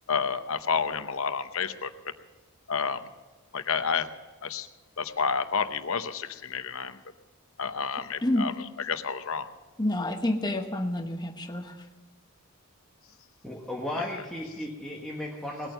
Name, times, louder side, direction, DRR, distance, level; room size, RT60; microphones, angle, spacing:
voice 1, 0.1-1.9 2.7-3.0 3.5-4.1 4.4-4.7 5.0-7.0 7.6-8.5 8.8-9.5, left 6 dB, 65° left, 10 dB, 0.8 m, -29 dB
voice 2, 8.2-8.5 9.8-11.7, left 1 dB, 20° left, 5 dB, 1.0 m, -28 dB
voice 3, 13.4-15.7, left 1 dB, 5° left, -3 dB, 1.4 m, -35 dB
19.5 x 9.1 x 6.8 m, 1.2 s
head